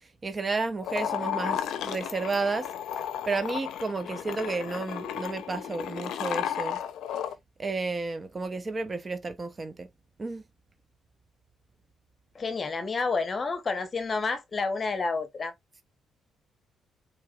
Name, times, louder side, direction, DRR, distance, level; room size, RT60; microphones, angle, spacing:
voice 1, 0.2-2.7 3.3-6.8 7.6-9.9 10.2-10.4, right 3 dB, 30° right, 0.7 m, -32 dB
sound 1, 0.8-7.3, left 9 dB, 80° left, 0.5 m, -33 dB
voice 2, 12.3-15.5, left 4 dB, 35° left, 0.9 m, -29 dB
4.6 x 3.1 x 2.4 m
cardioid pair, 90°, 0 cm